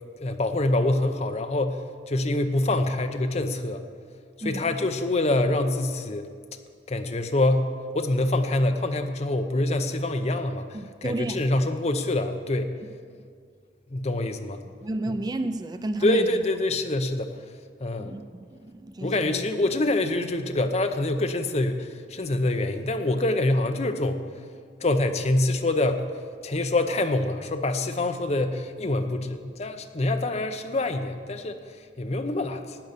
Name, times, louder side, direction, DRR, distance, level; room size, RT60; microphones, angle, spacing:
voice 1, 0.2-3.8 4.4-6.3 6.9-7.7 7.9-10.7 11.0-12.7 13.9-14.6 15.1-15.2 16.0-17.3 17.8-18.2 19.0-24.2 24.8-26.0 26.4-32.8, left 2 dB, 35° left, 8 dB, 0.7 m, -25 dB
voice 2, 4.4-4.7 10.7-11.6 14.8-16.3 18.0-19.4, right 1 dB, 20° right, 10 dB, 0.3 m, -32 dB
12.0 x 9.3 x 6.7 m, 2.1 s
head